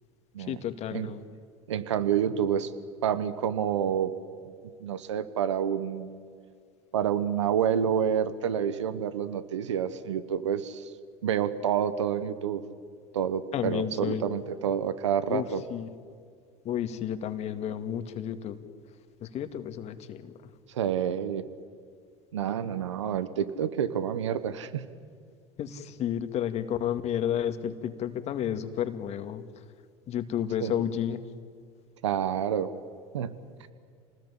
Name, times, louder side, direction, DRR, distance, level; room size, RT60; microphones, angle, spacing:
voice 1, 0.5-1.2 13.5-14.2 15.3-15.4 15.7-15.9 16.6-18.6 19.2-20.3 25.6-29.4 30.1-31.2, left 10 dB, 45° left, 9 dB, 2.2 m, -31 dB
voice 2, 1.7-2.7 3.0-4.1 4.8-6.2 6.9-10.9 11.2-12.6 13.1-15.6 20.7-21.5 22.3-24.9 30.6-30.7 32.0-32.7 33.1-33.3, right 8 dB, 85° right, 13 dB, 1.2 m, -28 dB
28.5 x 20.0 x 10.0 m, 2.2 s
hypercardioid pair, 85°, 15 cm